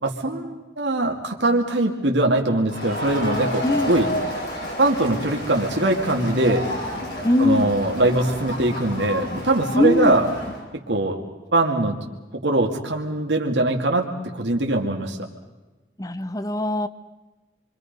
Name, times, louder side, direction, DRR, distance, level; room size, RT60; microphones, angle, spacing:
voice 1, 0.0-4.1 4.8-6.6 7.4-10.3 10.7-11.2 11.5-12.0 12.4-15.2, right 2 dB, 85° right, 1 dB, 2.2 m, -22 dB
Crowd, 2.7-10.6, left 1 dB, 80° left, 7.8 m, -31 dB
voice 2, 3.6-3.9 7.2-7.7 9.7-10.2 16.0-16.9, left 1 dB, 20° left, 13 dB, 0.8 m, -21 dB
27.5 x 24.5 x 5.4 m, 1.2 s
head